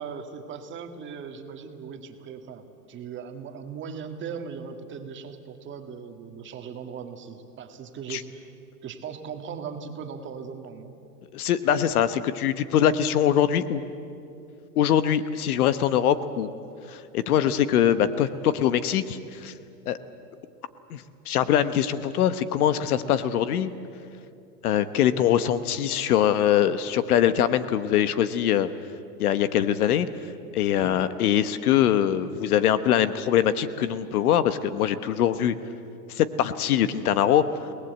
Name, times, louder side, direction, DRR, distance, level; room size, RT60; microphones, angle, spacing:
voice 1, 0.0-8.5 8.8-10.9, right 6 dB, 25° right, 6 dB, 1.9 m, -38 dB
voice 2, 11.3-13.8 14.7-16.5 16.9-19.5 19.9-20.0 20.9-23.7 24.6-28.7 29.2-30.1 30.5-35.5 36.1-37.4, left 10 dB, 65° left, 12 dB, 1.3 m, -23 dB
29.5 x 19.0 x 8.2 m, 2.6 s
hypercardioid pair, 130°, 48 cm